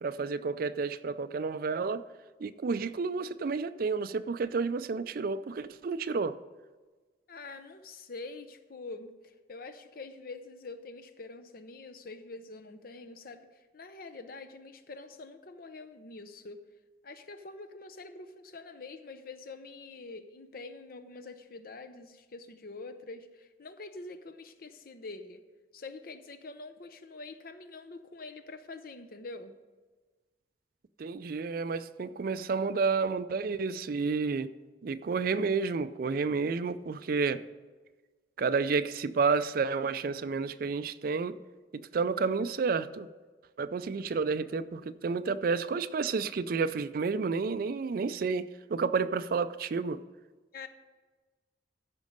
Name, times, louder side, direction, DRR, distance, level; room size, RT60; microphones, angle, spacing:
voice 1, 0.0-2.0 2.4-6.3 31.0-34.5 34.8-37.4 38.4-41.3 41.7-43.1 43.6-50.0, right 4 dB, 50° right, 0.4 m, -30 dB
voice 2, 7.3-16.6 17.0-25.4 25.7-29.5 50.5-50.7, left 3 dB, 50° left, 0.6 m, -45 dB
13.5 x 5.2 x 5.2 m
head